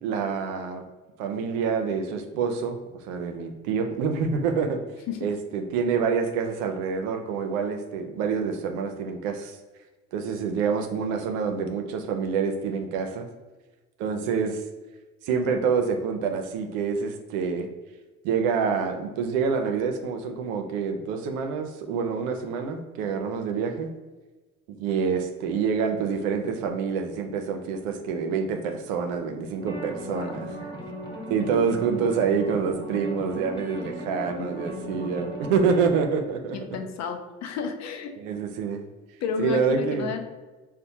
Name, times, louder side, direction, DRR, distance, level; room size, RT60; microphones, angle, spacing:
voice 1, 0.0-0.8 1.2-2.8 3.1-4.8 5.2-9.6 10.1-13.3 14.0-14.6 15.2-17.7 18.2-23.9 24.7-30.5 31.3-36.6 38.2-38.8 39.4-40.1, right 6 dB, 75° right, 6 dB, 0.6 m, -27 dB
sound 1, 29.6-35.9, right 1 dB, 10° left, 1.3 m, -37 dB
voice 2, 36.5-38.1 39.2-40.2, left 7 dB, 45° left, 5 dB, 0.6 m, -31 dB
4.2 x 2.1 x 2.7 m, 1.2 s
hypercardioid pair, 70°, 40 cm